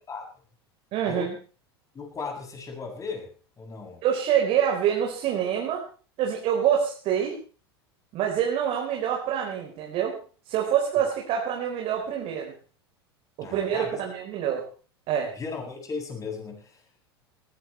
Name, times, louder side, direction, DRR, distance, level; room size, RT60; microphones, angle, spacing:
voice 1, 0.9-1.3 4.0-5.8 6.2-7.3 8.1-10.2 10.5-12.5 13.4-14.6 15.1-15.3, right 9 dB, 45° right, 1 dB, 4.4 m, -26 dB
voice 2, 1.9-3.3 3.6-4.0 11.1-11.2 13.4-14.0 15.3-16.8, left 4 dB, 25° left, 2 dB, 7.9 m, -36 dB
20.0 x 19.5 x 3.4 m, 0.38 s
figure-of-eight pair, 80°, 14 cm